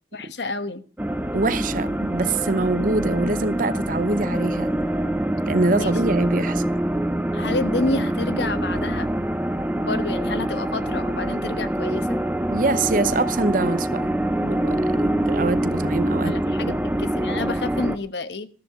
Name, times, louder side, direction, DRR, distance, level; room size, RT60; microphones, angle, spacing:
voice 1, 0.1-0.8 5.7-6.0 7.3-9.1 9.8-12.2 16.2-18.5, left 2 dB, 70° left, 1.2 m, -29 dB
sound 1, 1.0-18.0, right 1 dB, 10° right, 0.7 m, -25 dB
voice 2, 1.3-4.7 5.5-6.6 12.5-14.1 14.4-16.4 16.6-16.8, right 3 dB, 50° right, 0.7 m, -24 dB
14.0 x 13.5 x 3.7 m
head